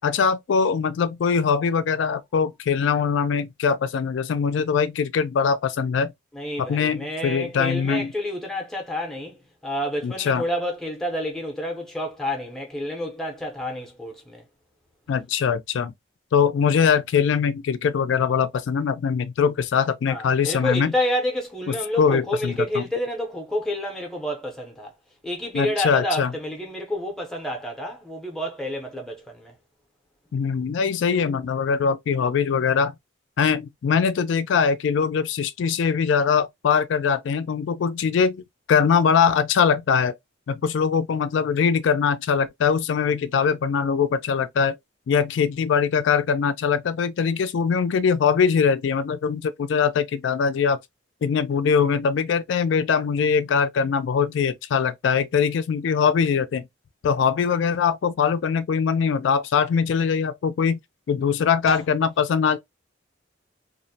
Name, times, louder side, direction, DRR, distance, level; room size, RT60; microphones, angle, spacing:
voice 1, 0.0-6.1 6.6-8.1 10.0-10.4 15.1-15.9 16.3-20.9 22.0-22.9 25.5-26.3 30.3-32.9 33.4-38.4 38.7-40.1 40.5-44.8 45.1-50.8 51.2-56.7 57.0-60.8 61.1-62.6, left 6 dB, 70° left, 0.3 m, -22 dB
voice 2, 6.3-9.4 9.6-14.4 20.1-24.9 25.2-29.5 61.7-61.8, left 1 dB, ahead, 0.5 m, -29 dB
2.4 x 2.0 x 2.6 m
head